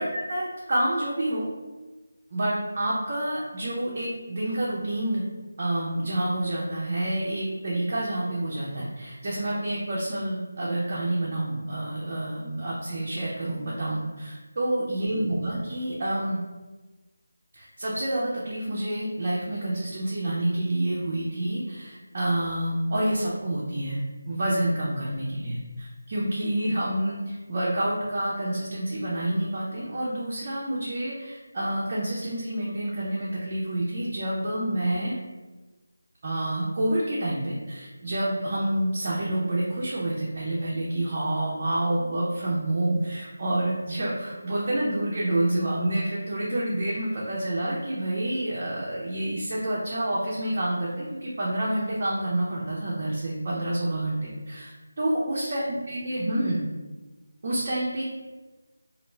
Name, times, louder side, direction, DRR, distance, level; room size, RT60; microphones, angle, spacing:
voice 1, 0.0-1.4 2.3-5.2 5.6-16.4 17.5-24.0 24.3-35.1 36.2-56.6 57.4-58.0, right 1 dB, 25° right, -6 dB, 0.3 m, -28 dB
2.3 x 2.2 x 3.0 m, 1.2 s
figure-of-eight pair, 180°, 0 cm